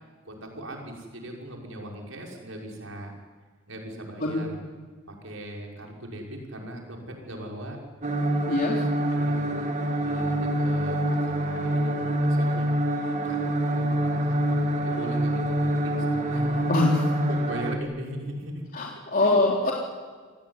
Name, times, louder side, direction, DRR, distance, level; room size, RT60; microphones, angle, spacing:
voice 1, 0.2-3.1 3.7-4.6 5.1-7.8 8.6-12.7 13.2-16.7 17.3-18.6 19.2-19.3, right 1 dB, 85° right, 0 dB, 6.0 m, -39 dB
sound 1, 8.0-17.8, right 1 dB, 40° right, 2.5 m, -26 dB
voice 2, 8.3-8.8 16.7-17.2 18.7-19.7, left 2 dB, 45° left, -2 dB, 3.7 m, -23 dB
28.0 x 19.0 x 9.8 m, 1.5 s
head